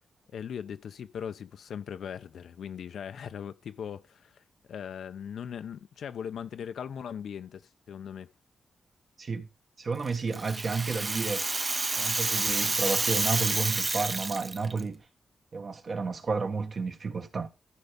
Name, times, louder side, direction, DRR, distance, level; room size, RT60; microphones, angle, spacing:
voice 1, 0.3-4.4 4.7-7.6 7.9-8.3, left 8 dB, 85° left, 0.8 m, -39 dB
voice 2, 9.8-11.4 12.0-15.0 15.5-17.5, right 4 dB, 50° right, 1.6 m, -31 dB
Rattle (instrument), 10.1-14.8, right 3 dB, 30° right, 0.9 m, -29 dB
14.5 x 4.8 x 5.3 m
cardioid pair, 95°, 0 cm